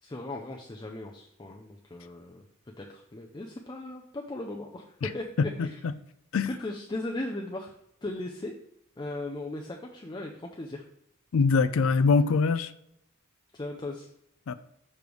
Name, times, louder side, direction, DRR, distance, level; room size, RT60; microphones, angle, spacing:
voice 1, 0.0-2.4 2.8-5.8 6.5-7.8 8.0-8.5 9.0-10.8 13.5-14.1, left 2 dB, 20° left, 0 dB, 0.5 m, -37 dB
voice 2, 5.4-5.9 6.3-6.5 11.3-12.7 14.5-14.6, left 4 dB, 70° left, 13 dB, 0.4 m, -24 dB
6.9 x 3.3 x 6.0 m, 0.78 s
head